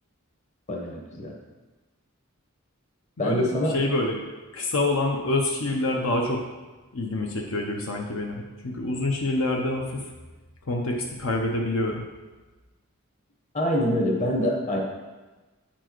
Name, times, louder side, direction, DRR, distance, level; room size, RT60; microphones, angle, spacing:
voice 1, 0.7-1.3 3.2-3.7 13.5-14.8, left 1 dB, 35° left, -1 dB, 1.2 m, -25 dB
voice 2, 3.2-4.2 4.5-6.4 6.9-10.1 10.7-12.0, left 2 dB, 70° left, 0 dB, 0.8 m, -26 dB
8.8 x 4.4 x 4.5 m, 1.2 s
head